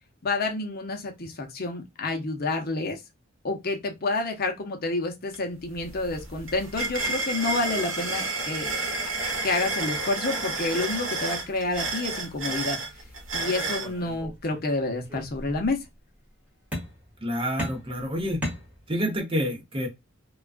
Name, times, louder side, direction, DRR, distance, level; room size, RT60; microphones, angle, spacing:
voice 1, 0.2-3.0 3.4-8.7 9.4-12.8 13.3-15.8, left 2 dB, 50° left, 0.7 m, -29 dB
sound 1, 5.3-5.4 5.7-13.9, right 3 dB, 65° right, 0.9 m, -31 dB
sound 2, 13.3-14.7 15.0-15.8 16.7-17.2 17.6-19.2, equal, 5° right, 1.1 m, -36 dB
voice 2, 17.2-18.4 18.9-19.9, equal, 25° right, 0.7 m, -28 dB
2.3 x 2.2 x 2.3 m
head